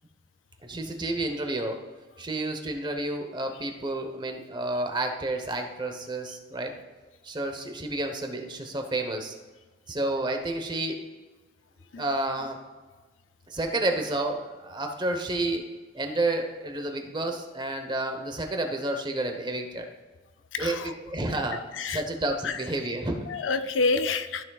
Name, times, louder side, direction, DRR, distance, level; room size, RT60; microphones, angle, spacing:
voice 1, 0.6-1.8 2.2-6.7 7.2-9.3 9.9-11.0 12.0-12.6 13.5-15.6 15.9-19.9 20.6-21.6 21.9-23.3, right 2 dB, 25° right, 4 dB, 1.0 m, -30 dB
voice 2, 20.5-20.9 21.7-22.0 22.4-22.6 23.3-24.4, left 4 dB, 90° left, 9 dB, 0.5 m, -27 dB
13.5 x 6.2 x 2.4 m, 1.3 s
head